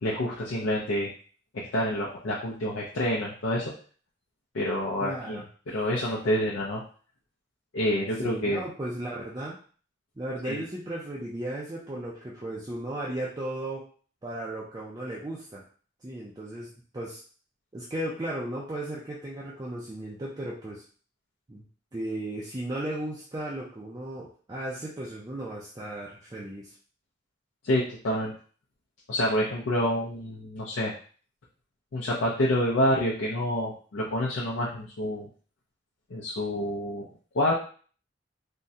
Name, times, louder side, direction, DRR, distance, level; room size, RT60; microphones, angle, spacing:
voice 1, 0.0-1.1 1.5-3.7 4.5-6.8 7.7-8.6 10.4-10.6 27.6-28.3 29.1-30.9 31.9-35.3 36.1-37.1 37.3-37.5, left 1 dB, 80° left, -4 dB, 0.5 m, -28 dB
voice 2, 5.0-5.5 8.2-9.6 10.2-13.9 14.2-15.6 16.0-17.2 17.7-20.8 21.5-21.6 21.9-26.7, right 1 dB, 20° right, -5 dB, 0.4 m, -35 dB
3.5 x 2.1 x 2.7 m, 0.42 s
head